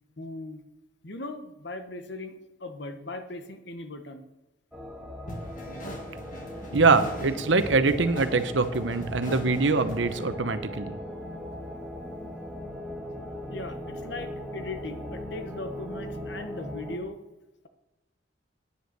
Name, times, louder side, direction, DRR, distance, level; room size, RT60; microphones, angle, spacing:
voice 1, 0.2-0.6 1.0-4.3 13.5-17.2, left 2 dB, 65° left, 8 dB, 1.2 m, -39 dB
sound 1, 4.7-17.0, left 1 dB, 5° right, 1.8 m, -39 dB
sound 2, 5.3-10.4, equal, 45° left, 2.2 m, -39 dB
voice 2, 6.7-10.9, right 3 dB, 80° right, 11 dB, 0.9 m, -23 dB
9.7 x 8.0 x 6.7 m, 0.99 s
head